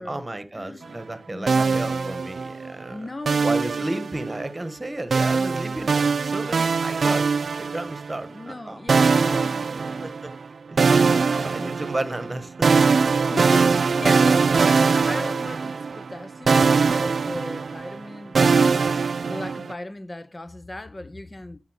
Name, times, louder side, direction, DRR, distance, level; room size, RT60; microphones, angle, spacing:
voice 1, 0.0-2.9 3.4-7.3 7.6-8.8 10.0-10.3 10.7-12.7, right 1 dB, 30° right, 1.3 m, -33 dB
voice 2, 0.5-2.4 2.9-4.2 8.2-10.1 11.1-11.8 13.3-18.9 19.3-21.6, left 1 dB, 35° left, 0.7 m, -37 dB
sound 1, 1.5-2.7 3.3-4.5 5.1-8.2 8.9-10.4 10.8-16.2 16.5-19.7, right 5 dB, 75° right, 0.4 m, -21 dB
11.0 x 3.8 x 6.5 m
cardioid pair, 45°, 0 cm